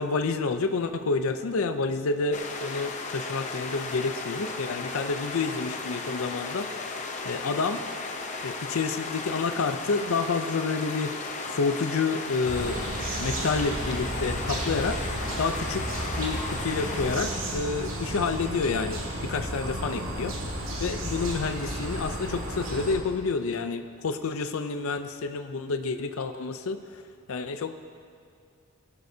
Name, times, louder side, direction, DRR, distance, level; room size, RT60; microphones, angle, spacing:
voice 1, 0.0-6.7 7.2-7.8 8.4-12.8 13.2-15.0 15.4-15.9 16.2-20.3 20.8-27.0 27.3-27.8, left 4 dB, 75° left, 9 dB, 0.5 m, -29 dB
sound 1, 2.3-17.2, left 3 dB, 35° left, 0.7 m, -35 dB
sound 2, 12.4-22.9, right 1 dB, 65° right, 1.9 m, -33 dB
18.5 x 11.5 x 2.7 m, 2.3 s
head